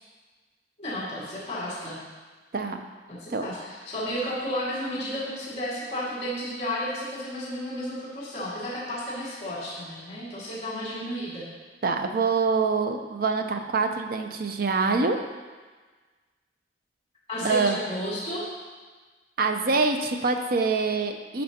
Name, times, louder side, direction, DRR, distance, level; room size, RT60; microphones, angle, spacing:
voice 1, 0.8-2.0 3.1-11.5 17.3-18.5, equal, 35° left, -9 dB, 2.1 m, -32 dB
voice 2, 11.8-15.2 17.4-17.8 19.4-21.4, right 4 dB, 55° right, 6 dB, 0.6 m, -25 dB
10.5 x 5.5 x 2.9 m, 1.4 s
head